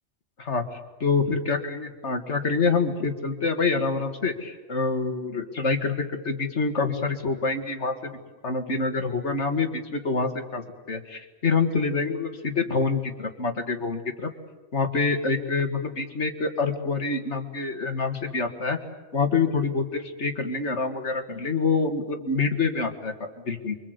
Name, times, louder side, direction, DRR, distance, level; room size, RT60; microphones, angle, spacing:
voice 1, 0.4-8.2 8.4-14.3 14.7-18.8 19.1-23.1 23.5-23.8, left 4 dB, 70° left, 6 dB, 2.3 m, -26 dB
29.0 x 24.0 x 8.1 m, 1.2 s
omnidirectional pair, 1.2 m